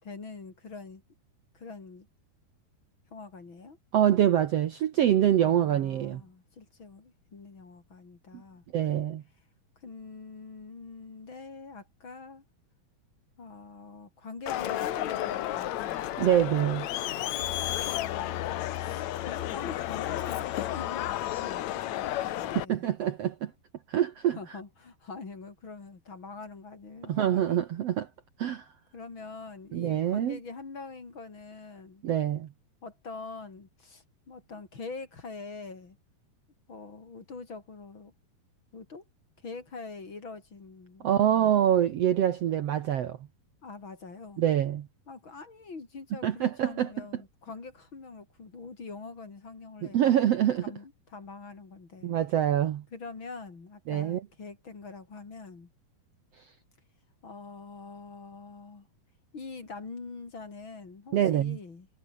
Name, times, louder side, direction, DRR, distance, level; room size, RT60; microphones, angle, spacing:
voice 1, 0.0-1.0 1.5-2.1 3.1-3.8 5.4-8.7 9.8-12.4 13.4-16.1 17.8-22.9 24.4-27.6 28.9-32.0 32.8-36.0 36.7-38.1 38.7-39.0 39.4-41.7 43.6-44.4 45.1-50.1 50.6-52.1 52.9-55.7 57.2-58.9 59.3-61.9, left 4 dB, 30° left, 3.7 m, -44 dB
voice 2, 3.9-6.2 8.7-9.2 16.2-16.9 22.7-23.5 23.9-24.4 27.1-28.1 28.4-28.6 29.7-30.4 32.0-32.5 41.0-43.2 44.4-44.9 46.2-46.9 49.9-50.6 52.0-52.8 53.9-54.2 61.1-61.6, right 10 dB, 85° right, 1.3 m, -25 dB
Crowd, 14.5-22.6, left 13 dB, 70° left, 1.7 m, -32 dB
omnidirectional pair, 4.5 m